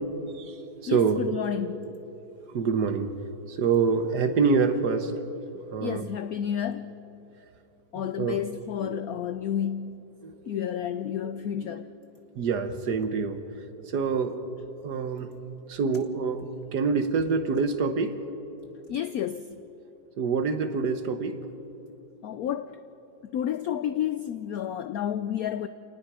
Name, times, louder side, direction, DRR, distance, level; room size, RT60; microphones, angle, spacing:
voice 1, 0.3-1.2 2.5-3.2 3.5-5.1 5.5-6.1 7.9-8.4 8.8-9.0 10.2-10.7 11.2-11.7 12.3-13.4 13.9-14.4 14.8-15.3 15.7-18.1 20.2-21.4, right 5 dB, 60° right, 1.6 m, -26 dB
voice 2, 0.9-1.9 5.8-6.9 7.9-10.0 10.5-11.9 18.9-19.6 22.2-22.8 23.3-25.7, left 10 dB, 75° left, 0.8 m, -31 dB
28.5 x 19.0 x 4.9 m
omnidirectional pair, 2.1 m